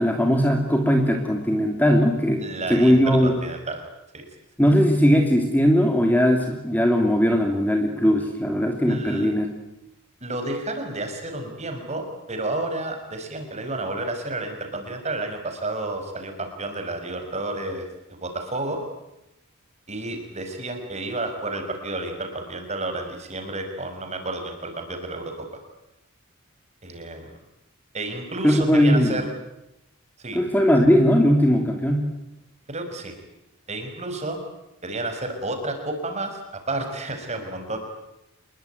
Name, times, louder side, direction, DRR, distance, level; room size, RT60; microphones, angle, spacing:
voice 1, 0.0-2.4 2.7-3.3 4.6-9.5 28.4-29.2 30.3-32.1, equal, 10° left, 4 dB, 2.8 m, -19 dB
voice 2, 2.4-3.8 4.1-4.3 8.9-9.3 10.2-17.8 18.2-18.8 19.9-25.3 26.8-27.3 27.9-29.3 30.2-30.4 32.7-33.2 33.7-34.4 34.8-37.8, right 2 dB, 30° right, 5 dB, 5.7 m, -31 dB
28.0 x 22.0 x 9.4 m, 0.88 s
head